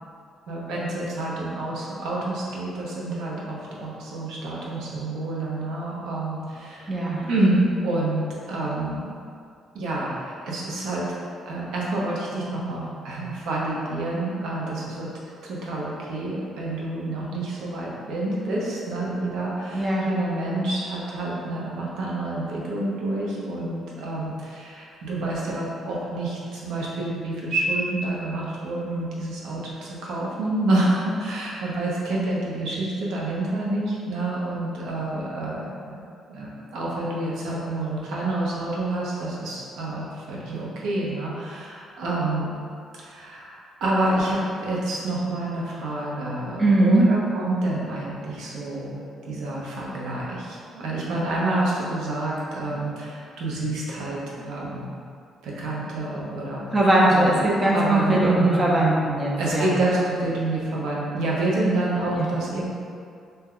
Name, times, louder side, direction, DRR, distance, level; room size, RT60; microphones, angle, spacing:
voice 1, 0.5-6.9 7.2-9.2 9.7-11.1 11.5-15.1 15.4-42.6 42.9-55.0 55.4-56.6 57.1-57.3 57.7-58.7 59.4-62.7, right 2 dB, 80° right, -5 dB, 0.7 m, -28 dB
voice 2, 6.9-7.2 19.7-20.1 46.6-47.1 56.7-59.7 62.1-62.2, right 1 dB, 20° right, -5 dB, 0.6 m, -20 dB
2.7 x 2.2 x 3.6 m, 2.4 s
cardioid pair, 135°, 0 cm